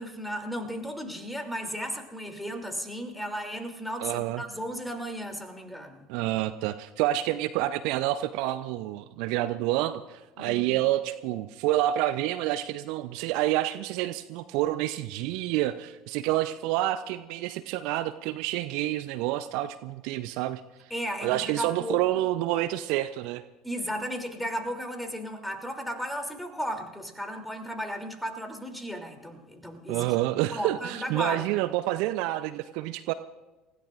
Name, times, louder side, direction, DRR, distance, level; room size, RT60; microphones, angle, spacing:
voice 1, 0.0-6.0 10.4-10.7 20.9-22.0 23.6-30.1 30.5-31.5, equal, ahead, 4 dB, 2.9 m, -35 dB
voice 2, 4.0-4.4 6.1-20.6 21.2-23.4 29.9-33.1, right 14 dB, 60° right, 13 dB, 0.5 m, -28 dB
29.5 x 16.5 x 2.5 m, 1.1 s
figure-of-eight pair, 65°, 0 cm